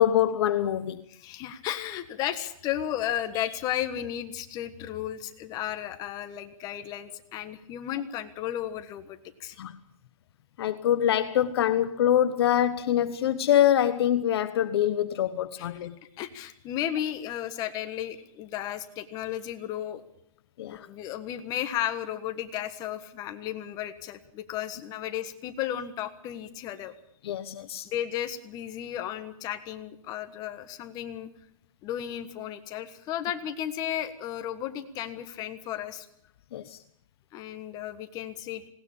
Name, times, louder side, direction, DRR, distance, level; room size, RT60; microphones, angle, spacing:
voice 1, 0.0-1.0 9.6-9.7 10.6-16.0 20.6-20.9 27.2-27.9 36.5-36.8, left 11 dB, 45° left, 1.1 m, -24 dB
voice 2, 1.1-9.6 15.6-15.7 16.2-20.0 20.7-26.9 27.8-31.3 31.8-36.1 37.3-38.7, left 11 dB, 20° left, 1.5 m, -34 dB
19.5 x 19.0 x 8.7 m
hypercardioid pair, 160°, 17 cm